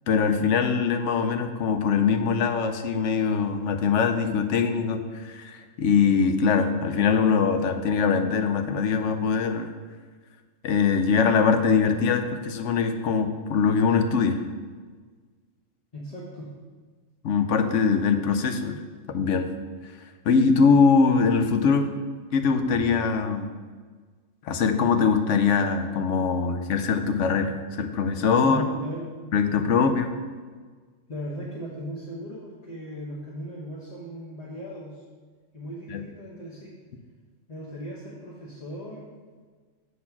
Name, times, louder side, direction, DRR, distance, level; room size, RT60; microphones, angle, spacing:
voice 1, 0.1-9.7 10.6-14.4 17.2-18.8 19.1-19.5 20.3-21.9 22.3-23.5 24.4-28.6 29.3-30.1 35.9-36.0, left 5 dB, 70° left, 7 dB, 0.9 m, -22 dB
voice 2, 15.9-16.5 28.4-29.1 31.1-35.0 35.5-36.7 37.5-39.0, equal, 30° left, -6 dB, 1.0 m, -37 dB
7.5 x 4.2 x 5.8 m, 1.5 s
omnidirectional pair, 1.4 m